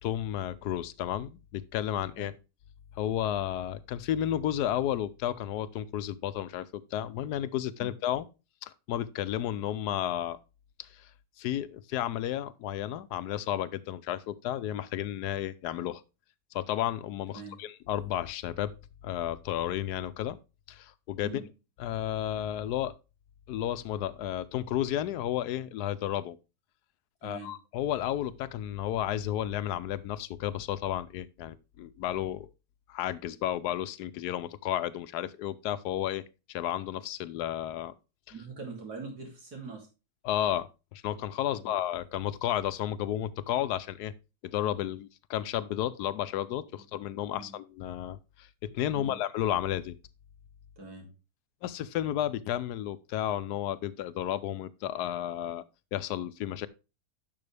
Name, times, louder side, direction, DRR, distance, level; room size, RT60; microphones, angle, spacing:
voice 1, 0.0-2.3 3.0-8.3 8.6-10.4 10.8-11.1 11.4-16.0 16.5-18.7 19.0-20.4 20.7-21.4 21.8-22.9 23.5-26.4 27.2-32.5 32.9-36.2 36.5-37.9 40.2-44.1 44.4-49.9 51.6-55.6 55.9-56.7, left 11 dB, 85° left, 1.2 m, -32 dB
voice 2, 38.3-39.9 47.3-47.4 48.9-49.2 50.8-51.1, right 4 dB, 80° right, 3.4 m, -42 dB
10.5 x 6.2 x 3.3 m
omnidirectional pair, 1.7 m